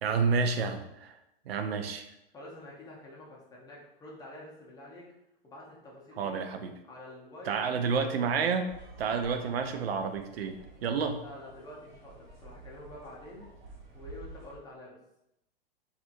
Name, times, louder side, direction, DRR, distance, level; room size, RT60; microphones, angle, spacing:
voice 1, 0.0-1.2 1.5-2.1 6.2-6.7 7.5-8.7 9.0-10.5 10.8-11.2, right 5 dB, 90° right, 6 dB, 0.4 m, -29 dB
voice 2, 2.3-5.1 5.4-6.4 6.9-8.1 11.2-13.5 13.9-15.0, left 1 dB, 15° left, -4 dB, 0.6 m, -48 dB
sound 1, 8.7-14.6, right 2 dB, 55° right, 1.2 m, -51 dB
2.6 x 2.5 x 2.5 m, 0.84 s
hypercardioid pair, 125°, 29 cm